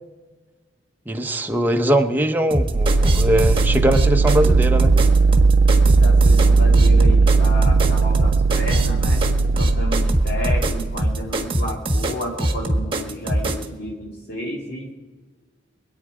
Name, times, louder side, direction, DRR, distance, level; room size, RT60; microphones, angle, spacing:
voice 1, 1.1-4.9, equal, 10° right, 4 dB, 0.8 m, -21 dB
sound 1, 2.5-13.7, right 1 dB, 30° right, 1.4 m, -22 dB
sound 2, 2.7-11.4, right 4 dB, 60° right, 0.4 m, -17 dB
voice 2, 5.8-9.2 9.5-14.9, equal, 55° left, -3 dB, 2.3 m, -31 dB
24.0 x 8.8 x 4.9 m, 1.3 s
head